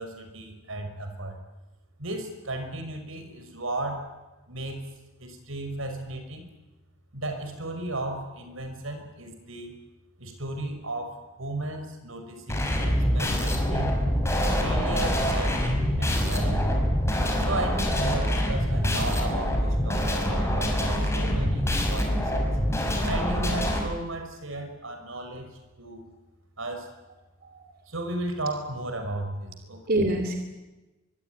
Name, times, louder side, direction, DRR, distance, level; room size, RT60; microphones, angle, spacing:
voice 1, 0.0-1.4 2.0-4.1 4.5-4.8 5.2-6.5 7.1-9.8 10.2-13.9 14.6-16.8 17.4-22.6 23.1-25.5 25.8-26.1 26.6-26.9 27.9-29.8, right 2 dB, 85° right, 7 dB, 5.6 m, -34 dB
sound 1, 12.5-23.8, equal, 15° left, 5.7 m, -25 dB
voice 2, 27.4-27.8 29.9-30.4, right 1 dB, 50° right, 6 dB, 3.0 m, -27 dB
24.0 x 23.5 x 9.6 m, 1.1 s
head